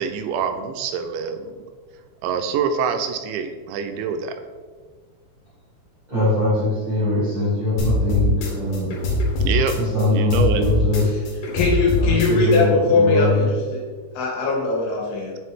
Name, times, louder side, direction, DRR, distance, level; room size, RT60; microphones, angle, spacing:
voice 1, 0.0-1.5 2.2-4.3 9.4-9.8 10.1-10.6, right 6 dB, 85° right, 7 dB, 2.7 m, -25 dB
voice 2, 6.1-9.1 9.8-11.1 12.0-13.5, left 2 dB, 65° right, -9 dB, 1.1 m, -22 dB
sound 1, 7.8-10.0 10.3-12.6, left 2 dB, 70° left, 2.1 m, -22 dB
voice 3, 11.5-13.8 14.2-15.3, left 3 dB, 85° left, -2 dB, 3.7 m, -20 dB
9.2 x 3.3 x 3.5 m, 1.5 s
omnidirectional pair, 5.2 m